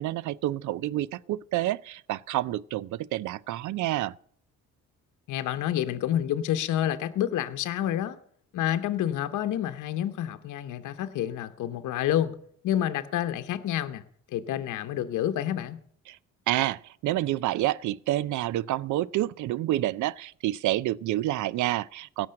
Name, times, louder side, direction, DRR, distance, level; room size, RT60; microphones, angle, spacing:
voice 1, 0.0-4.1 16.1-16.2 16.5-22.3, right 15 dB, 75° right, 0.5 m, -28 dB
voice 2, 5.3-8.2 8.5-12.3 12.6-14.0 14.3-15.8, left 11 dB, 80° left, 0.9 m, -28 dB
16.5 x 6.2 x 7.6 m
cardioid pair, 90°, 30 cm